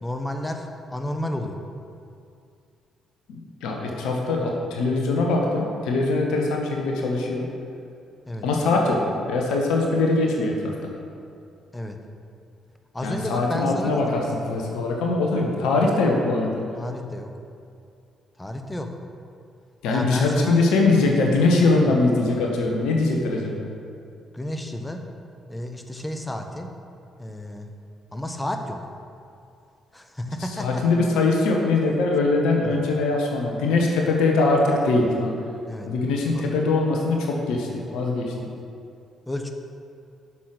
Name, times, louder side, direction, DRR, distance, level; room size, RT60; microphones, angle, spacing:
voice 1, 0.0-1.6 8.2-8.5 11.7-12.0 12.9-14.3 15.7-15.9 16.7-17.3 18.4-18.9 19.9-20.6 21.9-22.0 24.3-25.0 25.5-26.7 27.2-27.7 28.1-28.8 29.9-30.8 32.6-32.8 35.7-35.9 36.3-36.4 38.3-38.5 39.3-39.5, left 1 dB, 15° left, 5 dB, 1.2 m, -31 dB
voice 2, 3.3-7.5 8.4-9.0 9.3-10.9 13.0-16.6 19.8-23.5 30.6-35.3 35.9-38.3, left 3 dB, 70° left, 0 dB, 1.3 m, -22 dB
11.5 x 6.1 x 5.0 m, 2.4 s
figure-of-eight pair, 45°, 0 cm